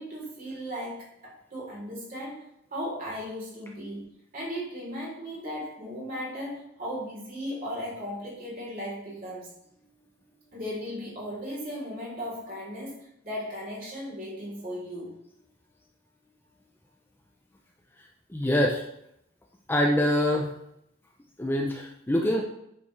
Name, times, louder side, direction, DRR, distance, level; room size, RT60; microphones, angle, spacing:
voice 1, 0.0-2.4 2.7-9.5 10.5-15.1, equal, 45° right, -5 dB, 3.5 m, -36 dB
voice 2, 18.3-18.8 19.7-20.5 21.4-22.4, left 1 dB, 10° left, 0 dB, 0.6 m, -24 dB
8.4 x 7.0 x 3.2 m, 0.79 s
head